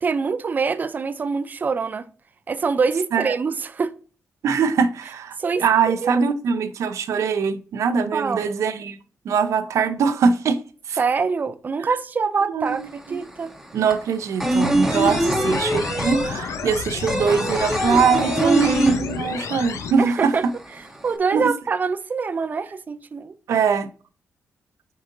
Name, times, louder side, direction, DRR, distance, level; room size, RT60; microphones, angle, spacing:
voice 1, 0.0-2.1 2.5-3.9 5.4-6.2 8.1-8.5 11.0-13.5 15.2-15.5 20.0-20.4 21.0-23.3, right 5 dB, 35° right, 0.5 m, -25 dB
voice 2, 4.4-9.0 9.2-10.6 10.9-11.0 11.8-11.9 12.5-13.2 13.7-20.3 21.3-21.5 23.5-23.9, right 6 dB, 75° right, 0.8 m, -22 dB
sound 1, 12.7-12.8 13.0-19.6 19.9-20.0 20.3-21.1, right 1 dB, 5° right, 1.1 m, -23 dB
sound 2, 14.9-19.9, left 6 dB, 70° left, 0.8 m, -31 dB
7.7 x 5.0 x 2.7 m
wide cardioid pair, 140°, 5 cm